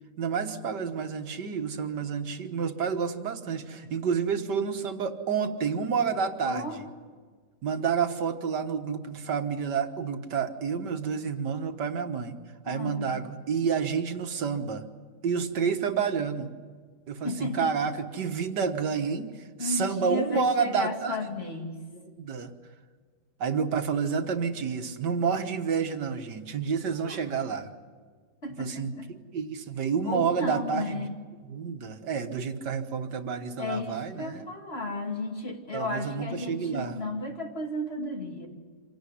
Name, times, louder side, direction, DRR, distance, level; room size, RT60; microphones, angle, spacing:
voice 1, 0.2-6.9 7.6-12.4 12.6-14.9 15.2-16.5 17.1-21.3 22.1-22.5 23.4-27.7 28.6-31.1 31.5-34.5 35.7-37.0, right 6 dB, 85° right, 7 dB, 2.0 m, -29 dB
voice 2, 6.4-6.7 12.7-13.1 17.2-17.7 19.6-21.8 27.0-27.2 28.4-29.1 30.0-31.1 33.6-38.5, left 2 dB, 35° left, 2 dB, 2.8 m, -34 dB
26.0 x 17.5 x 10.0 m, 1.5 s
omnidirectional pair, 1.8 m